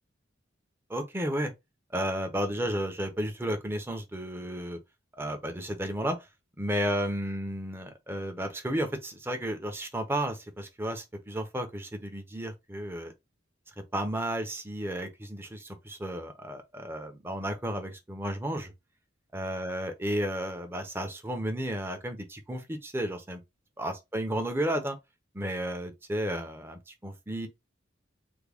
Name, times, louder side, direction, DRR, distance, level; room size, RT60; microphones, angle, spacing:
voice 1, 0.9-1.5 1.9-4.8 5.2-6.2 6.6-13.1 13.9-18.7 19.3-23.4 23.8-25.0 25.3-27.5, right 1 dB, 10° right, 0.6 m, -33 dB
3.5 x 2.2 x 3.4 m
head